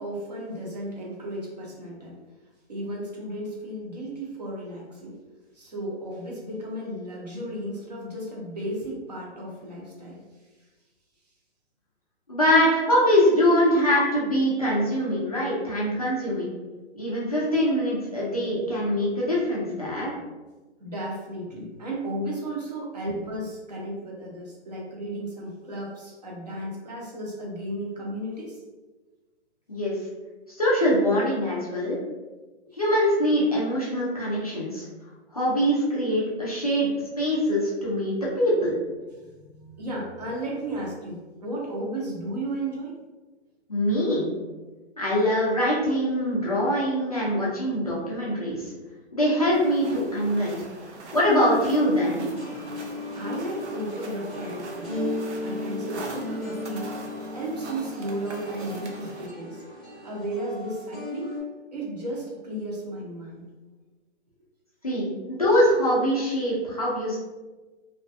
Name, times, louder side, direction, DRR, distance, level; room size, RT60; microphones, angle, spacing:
voice 1, 0.0-2.2 2.7-5.1 5.5-10.2 12.6-12.9 13.6-14.1 20.8-28.6 32.7-32.8 39.1-42.9 53.2-55.1 55.4-56.9 57.3-59.6 60.0-61.3 61.7-63.5, right 1 dB, 35° right, -4 dB, 0.6 m, -34 dB
voice 2, 12.3-16.5 16.9-20.1 29.7-29.9 30.5-32.0 32.8-34.9 35.3-36.9 37.2-38.8 43.7-44.3 45.0-48.7 49.1-50.6 51.1-52.3 64.8-67.2, equal, 35° left, -7 dB, 0.4 m, -23 dB
sound 1, 49.5-59.3, right 2 dB, 75° right, 0.7 m, -42 dB
sound 2, 52.3-61.4, left 2 dB, 5° left, 0.7 m, -35 dB
2.4 x 2.2 x 2.5 m, 1.2 s
hypercardioid pair, 170°, 35 cm